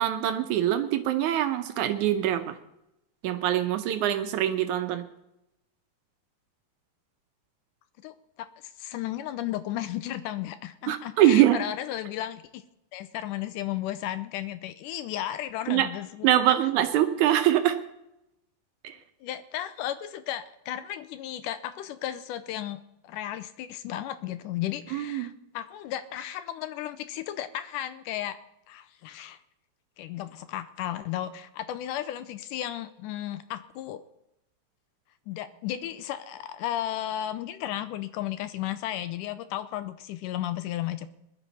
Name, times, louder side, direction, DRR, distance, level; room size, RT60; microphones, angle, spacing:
voice 1, 0.0-2.6 3.2-5.1 10.9-11.6 15.7-15.9 16.2-17.8 18.8-18.9 24.9-25.3, right 12 dB, 75° right, 8 dB, 1.8 m, -23 dB
voice 2, 8.0-8.5 8.8-12.6 12.9-16.6 19.2-28.4 28.7-29.4 30.0-34.0 35.3-41.1, left 12 dB, 80° left, 12 dB, 1.9 m, -34 dB
20.5 x 12.0 x 4.1 m, 0.85 s
omnidirectional pair, 4.4 m